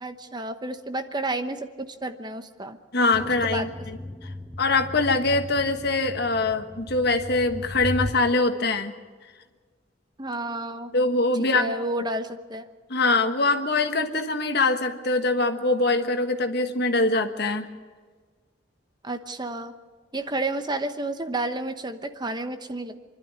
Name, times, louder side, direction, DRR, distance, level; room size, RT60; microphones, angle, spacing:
voice 1, 0.0-2.8 3.4-3.7 10.2-10.9 11.5-12.7 19.0-19.7 20.1-23.0, right 2 dB, 25° right, 8 dB, 1.0 m, -31 dB
voice 2, 2.9-3.7 4.6-8.9 10.9-11.7 12.9-17.6, left 3 dB, 60° left, 7 dB, 1.4 m, -23 dB
sound 1, 3.1-8.2, left 2 dB, 5° left, 0.8 m, -36 dB
25.0 x 12.0 x 9.5 m, 1.5 s
head